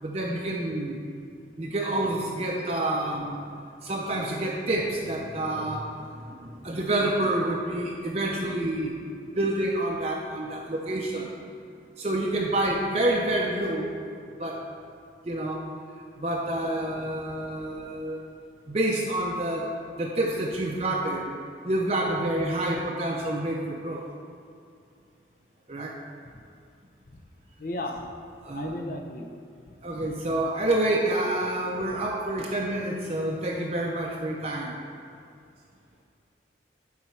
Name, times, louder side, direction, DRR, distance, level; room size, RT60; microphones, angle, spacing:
voice 1, 0.0-1.0 1.6-3.4 3.8-8.9 9.3-11.3 12.0-13.9 14.4-14.6 15.2-15.6 16.2-18.2 18.7-19.7 20.0-21.3 21.6-24.0 25.7-25.9 28.4-28.8 29.8-34.8, right 1 dB, 35° right, -1 dB, 0.6 m, -28 dB
voice 2, 27.6-28.1 28.5-29.3 29.7-30.1, left 1 dB, 50° left, 3 dB, 0.7 m, -35 dB
9.1 x 4.2 x 5.6 m, 2.4 s
head